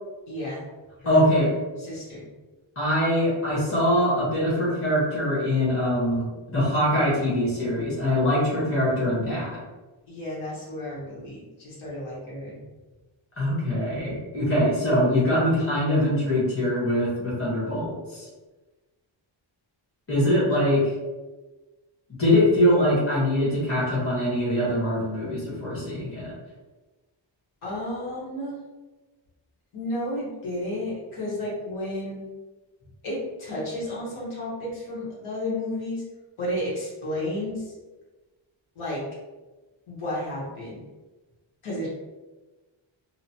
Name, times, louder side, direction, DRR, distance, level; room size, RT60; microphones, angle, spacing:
voice 1, 0.3-0.7 1.0-1.4 1.8-2.3 10.1-12.6 27.6-28.6 29.7-32.3 33.0-36.0 36.4-37.7 38.7-39.0 39.9-40.8 41.6-41.9, left 1 dB, 85° left, -7 dB, 1.1 m, -32 dB
voice 2, 1.0-1.5 2.8-6.3 6.5-9.6 13.4-18.3 20.1-20.9 22.2-26.3, left 1 dB, 30° left, -8 dB, 1.2 m, -23 dB
2.9 x 2.1 x 2.8 m, 1.2 s
wide cardioid pair, 150°, 47 cm